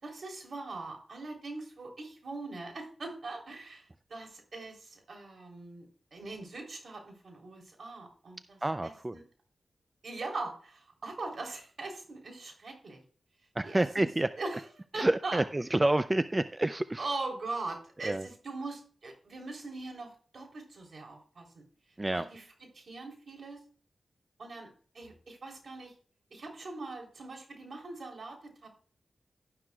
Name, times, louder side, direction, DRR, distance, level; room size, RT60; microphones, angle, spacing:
voice 1, 0.0-5.9 6.1-9.2 10.0-13.0 13.6-14.7 14.9-15.4 17.0-21.6 22.1-23.6 24.4-24.7 24.9-25.9 26.3-28.7, right 3 dB, 70° right, 2 dB, 3.6 m, -41 dB
voice 2, 8.6-9.1 13.6-14.3 15.0-17.1 18.0-18.2 22.0-22.2, right 1 dB, 25° right, 12 dB, 0.5 m, -28 dB
11.5 x 11.0 x 2.4 m, 0.43 s
cardioid pair, 50°, 0 cm